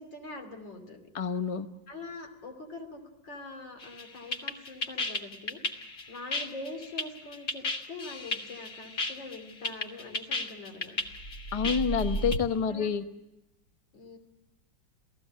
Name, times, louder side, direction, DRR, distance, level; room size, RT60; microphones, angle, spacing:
voice 1, 0.0-1.1 1.9-5.6 6.1-11.0 12.7-12.9 13.9-14.2, left 2 dB, 80° left, 6 dB, 3.5 m, -43 dB
voice 2, 1.1-1.7 11.5-13.0, left 6 dB, 25° left, 9 dB, 0.7 m, -28 dB
sound 1, 3.8-12.4, left 1 dB, 45° left, 1.9 m, -33 dB
28.5 x 17.5 x 7.5 m, 0.94 s
omnidirectional pair, 2.0 m